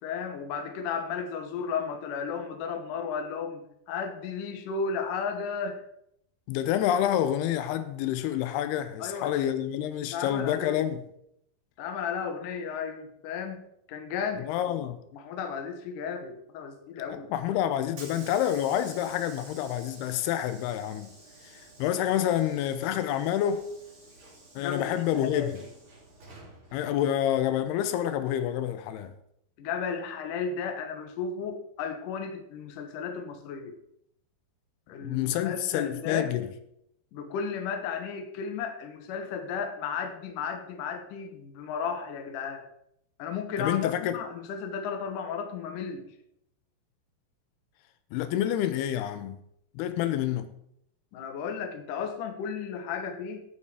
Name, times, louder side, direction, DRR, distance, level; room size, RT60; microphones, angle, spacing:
voice 1, 0.0-5.8 9.0-9.5 10.1-10.9 11.8-14.8 15.1-17.3 24.6-25.6 29.6-33.7 34.9-36.3 37.1-42.6 43.2-46.1 51.1-53.5, left 6 dB, 65° left, 2.5 m, -34 dB
voice 2, 6.5-11.0 14.5-15.0 17.1-21.1 21.4-23.7 24.6-25.5 26.7-29.1 35.0-36.5 43.6-44.2 48.1-49.4 49.8-50.5, left 11 dB, 90° left, 2.8 m, -28 dB
Hiss / Sliding door, 17.2-28.1, right 2 dB, 45° right, 4.2 m, -51 dB
16.5 x 5.6 x 4.9 m
omnidirectional pair, 4.5 m